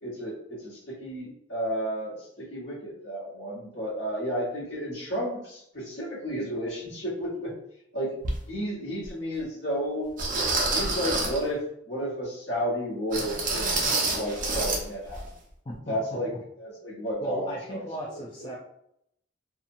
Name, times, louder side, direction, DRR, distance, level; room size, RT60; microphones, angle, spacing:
voice 1, 0.0-7.5 7.9-8.1 8.5-10.1 10.7-15.2 15.9-16.3 16.6-17.8 18.1-18.6, equal, 65° left, -8 dB, 1.2 m, -32 dB
sound 1, 8.2-8.4 9.0-9.1 10.2-11.4 13.1-14.8 15.1-15.3 15.7-15.8, right 3 dB, 45° right, 0.6 m, -27 dB
voice 2, 15.6-16.0 17.2-18.6, equal, 25° left, -5 dB, 0.5 m, -36 dB
2.8 x 2.3 x 2.6 m, 0.76 s
head